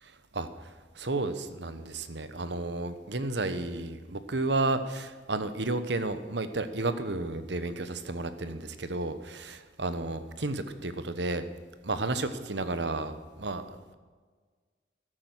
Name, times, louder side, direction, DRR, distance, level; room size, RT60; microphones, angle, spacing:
voice 1, 0.0-11.4 11.8-13.9, right 2 dB, 70° right, 11 dB, 1.1 m, -32 dB
14.0 x 11.0 x 6.2 m, 1.5 s
head